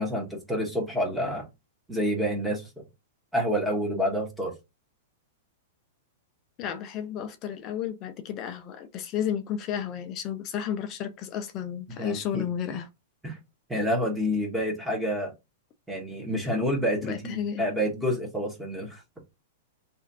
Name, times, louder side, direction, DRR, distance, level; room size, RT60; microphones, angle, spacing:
voice 1, 0.0-1.5 1.9-2.7 3.3-4.5 12.0-12.4 13.2-13.4 13.7-15.3 15.9-19.0, equal, 5° right, 1.2 m, -28 dB
voice 2, 6.6-12.9 17.0-17.6, left 9 dB, 30° left, 0.5 m, -32 dB
3.0 x 2.5 x 4.0 m
supercardioid pair, 160°, 0 cm